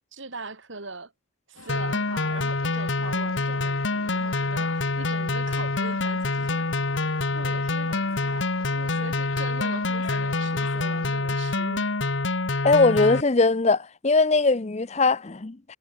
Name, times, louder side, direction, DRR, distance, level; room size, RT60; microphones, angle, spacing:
voice 1, 0.1-1.1 1.5-6.7 7.3-11.9, right 3 dB, 65° right, 2.8 m, -41 dB
sound 1, 1.5-11.1, left 4 dB, 85° left, 4.7 m, -46 dB
sound 2, 1.7-13.2, left 3 dB, 60° left, 1.2 m, -26 dB
voice 2, 12.6-15.8, left 3 dB, 30° left, 0.6 m, -21 dB
head